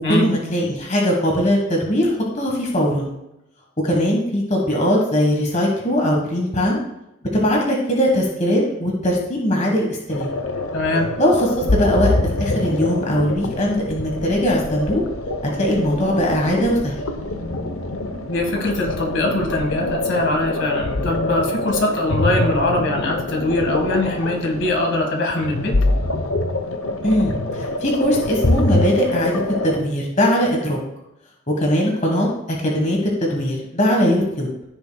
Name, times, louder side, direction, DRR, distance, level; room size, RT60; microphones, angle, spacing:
voice 1, 0.1-3.1 3.8-6.8 7.3-10.3 11.2-15.0 15.4-16.9 27.0-30.8 31.5-34.5, equal, 35° left, -1 dB, 1.5 m, -20 dB
sound 1, 10.1-29.8, left 2 dB, 85° left, 0.9 m, -25 dB
voice 2, 10.7-11.1 18.3-25.8, left 2 dB, 60° left, 1 dB, 1.8 m, -22 dB
14.5 x 6.8 x 2.3 m, 0.85 s
head